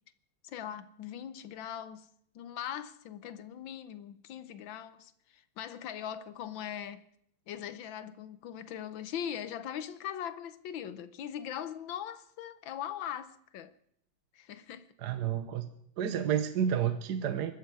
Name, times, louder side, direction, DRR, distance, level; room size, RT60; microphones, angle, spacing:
voice 1, 0.4-2.1 2.3-7.0 7.5-13.7 14.3-14.9, left 9 dB, 70° left, 1.5 m, -40 dB
voice 2, 15.0-15.7 16.0-17.5, right 9 dB, 60° right, 1.3 m, -30 dB
23.0 x 13.0 x 4.8 m
omnidirectional pair, 2.3 m